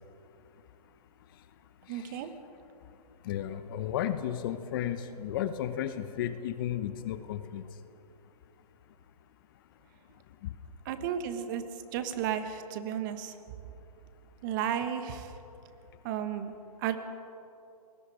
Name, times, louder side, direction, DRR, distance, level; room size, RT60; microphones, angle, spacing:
voice 1, 1.9-2.3 10.8-11.6 11.9-13.4 14.4-15.4 16.0-16.5 16.8-17.0, right 9 dB, 30° right, 9 dB, 1.5 m, -33 dB
voice 2, 3.2-7.7 10.4-10.5, left 10 dB, 35° left, 11 dB, 1.0 m, -33 dB
28.5 x 21.0 x 5.0 m, 2.8 s
hypercardioid pair, 150°, 20 cm